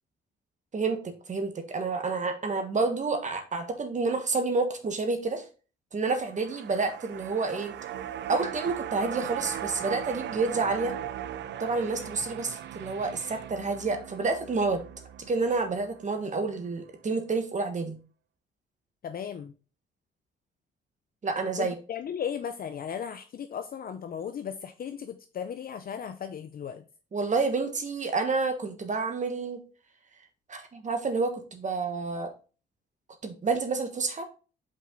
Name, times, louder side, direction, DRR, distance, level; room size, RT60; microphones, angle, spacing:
voice 1, 0.7-5.4 5.9-7.7 8.3-10.9 11.6-14.8 15.3-18.0 21.2-21.7 27.1-29.6 30.5-32.3 33.2-34.3, right 3 dB, 40° right, 6 dB, 1.4 m, -29 dB
sound 1, 6.2-16.6 16.9-17.0, right 10 dB, 65° right, 0.5 m, -38 dB
voice 2, 19.0-19.5 21.6-26.8, left 8 dB, 50° left, 9 dB, 0.6 m, -36 dB
5.6 x 4.9 x 3.8 m, 0.35 s
cardioid pair, 90°, 20 cm